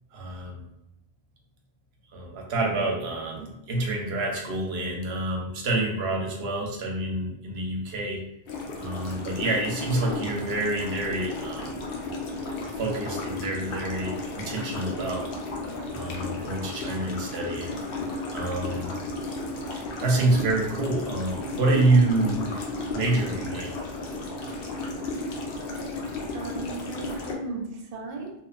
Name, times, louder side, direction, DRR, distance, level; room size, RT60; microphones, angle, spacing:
voice 1, 0.1-0.7 2.1-8.2 8.8-11.7 12.8-15.3 15.9-17.7 18.3-18.9 20.0-22.5 22.9-23.8, right 2 dB, 70° right, -1 dB, 0.8 m, -27 dB
sound 1, 8.5-27.3, left 2 dB, 65° left, 0.7 m, -34 dB
voice 2, 25.5-26.0 26.3-28.3, right 3 dB, 50° right, -1 dB, 0.5 m, -37 dB
2.8 x 2.1 x 2.4 m, 0.84 s
omnidirectional pair, 1.1 m